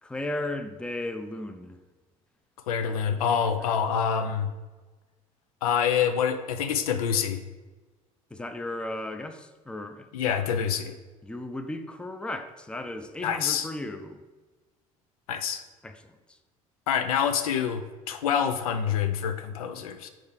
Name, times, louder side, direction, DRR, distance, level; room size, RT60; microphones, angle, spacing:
voice 1, 0.0-1.8 8.3-10.5 11.2-14.2 15.8-16.0 16.3-16.4, left 1 dB, 5° left, 9 dB, 0.5 m, -35 dB
voice 2, 2.7-4.5 5.6-7.4 10.1-10.9 13.2-13.7 15.3-15.6 16.9-20.1, left 7 dB, 75° left, 9 dB, 0.4 m, -26 dB
6.4 x 4.4 x 3.6 m, 1.3 s
hypercardioid pair, 60°, 18 cm